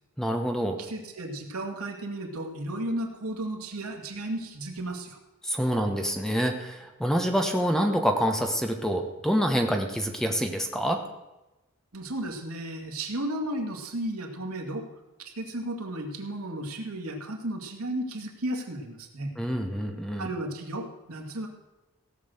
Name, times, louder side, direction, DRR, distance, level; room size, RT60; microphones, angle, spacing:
voice 1, 0.2-0.8 5.4-11.0 19.4-20.3, equal, ahead, 4 dB, 1.1 m, -26 dB
voice 2, 0.8-5.2 11.9-14.9 15.2-19.3 20.2-21.5, right 1 dB, 80° right, 2 dB, 2.2 m, -34 dB
16.5 x 6.4 x 7.9 m, 1.0 s
head